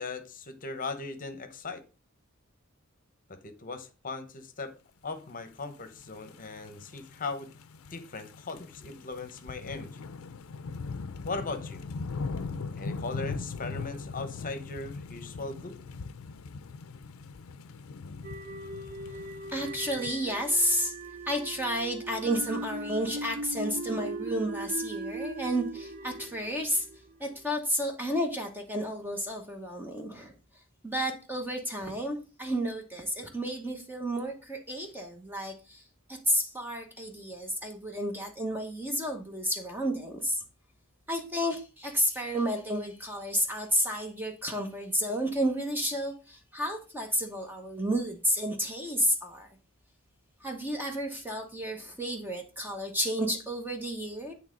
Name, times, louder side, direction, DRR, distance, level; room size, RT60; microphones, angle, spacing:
voice 1, 0.0-1.8 3.3-4.7 5.0-7.5 7.9-10.0 11.2-11.8 12.8-15.7, left 3 dB, 40° left, 0.9 m, -38 dB
sound 1, 5.8-20.1, left 4 dB, 90° left, 0.5 m, -40 dB
sound 2, 18.2-27.4, right 2 dB, 45° right, 0.5 m, -39 dB
voice 2, 19.5-20.9 21.3-26.9 27.2-30.3 30.8-35.8 36.1-40.4 41.1-49.5 50.4-54.3, equal, 10° right, 1.0 m, -31 dB
8.8 x 3.3 x 5.1 m
head